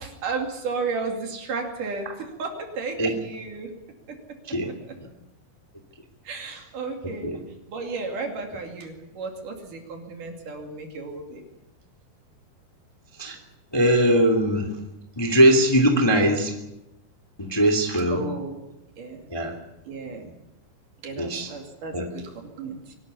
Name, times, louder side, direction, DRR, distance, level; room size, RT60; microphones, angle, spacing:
voice 1, 0.0-3.7 6.2-7.3 7.7-11.4 18.1-18.6 19.0-19.2 19.9-20.3 21.0-22.9, right 4 dB, 60° right, 3 dB, 3.9 m, -33 dB
voice 2, 13.7-14.7 15.2-16.5 17.4-18.2 19.3-19.5 21.2-21.5 21.9-22.1, right 1 dB, 10° left, 3 dB, 1.9 m, -20 dB
23.5 x 12.5 x 9.7 m, 0.92 s
omnidirectional pair, 4.5 m